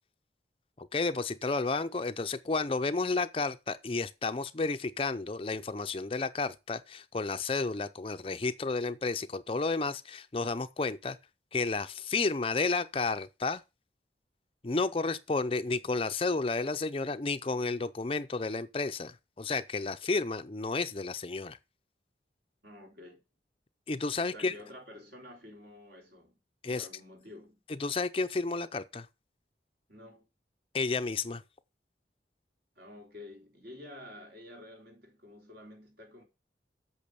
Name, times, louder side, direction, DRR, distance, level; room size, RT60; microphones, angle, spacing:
voice 1, 0.8-11.2 11.5-13.6 14.6-21.6 23.9-24.5 26.6-26.9 27.8-29.1 30.7-31.4, left 3 dB, 30° left, 0.5 m, -31 dB
voice 2, 22.6-23.2 24.2-26.4 26.7-27.6 29.9-30.3 32.8-36.2, left 1 dB, 60° right, 3.9 m, -50 dB
8.5 x 6.5 x 6.8 m
head